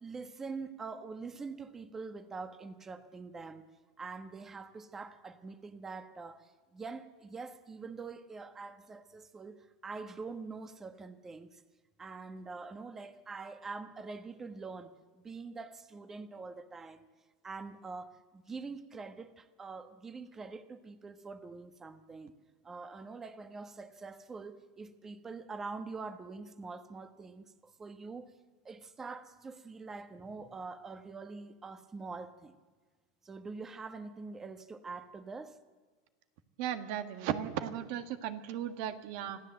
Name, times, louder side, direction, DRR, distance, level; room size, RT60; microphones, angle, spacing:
voice 1, 0.0-3.7 4.0-11.5 12.0-17.1 17.4-22.3 22.6-28.3 28.6-32.5 33.2-35.6, right 4 dB, 15° right, 1.2 m, -45 dB
voice 2, 36.6-39.4, right 10 dB, 60° right, 1.6 m, -36 dB
26.0 x 15.0 x 7.7 m
supercardioid pair, 135°, 2 cm